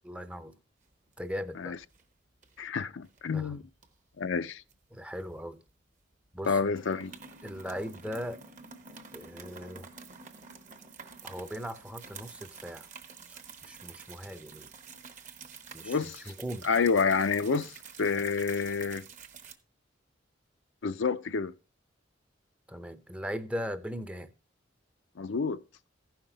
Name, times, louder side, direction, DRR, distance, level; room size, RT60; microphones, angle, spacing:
voice 1, 0.0-0.6 1.2-1.7 3.3-3.6 4.9-5.6 6.3-6.6 7.4-8.4 9.1-9.9 11.2-12.9 13.3-14.7 15.7-16.0 16.3-16.7 22.7-24.3, equal, 5° right, 0.6 m, -39 dB
sound 1, 0.9-1.5 1.8-2.0 2.4-3.2 3.8-5.7 6.0-6.1 6.4-19.5, right 5 dB, 40° right, 1.0 m, -49 dB
voice 2, 2.6-3.6 4.2-4.6 6.5-7.1 15.8-16.2 16.6-19.0 20.8-21.5 25.2-25.6, left 5 dB, 75° left, 0.5 m, -28 dB
15.0 x 5.8 x 3.9 m
head